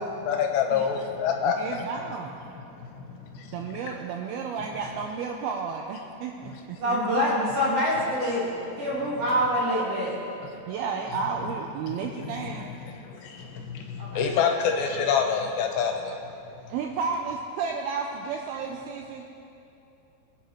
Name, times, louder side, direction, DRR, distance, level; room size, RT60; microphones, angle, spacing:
voice 1, 0.2-1.9 2.4-3.9 6.4-6.8 8.6-8.8 9.1-9.2 10.4-10.8 11.1-11.2 11.5-11.6 11.8-16.7, left 7 dB, 80° left, 3 dB, 3.1 m, -29 dB
voice 2, 1.5-2.3 3.5-7.0 10.7-12.7 16.7-19.2, right 5 dB, 90° right, 2 dB, 2.2 m, -32 dB
voice 3, 6.8-8.5 8.8-10.1 14.0-14.2, equal, 55° right, -7 dB, 1.9 m, -25 dB
24.0 x 8.1 x 3.0 m, 2.8 s
omnidirectional pair, 5.0 m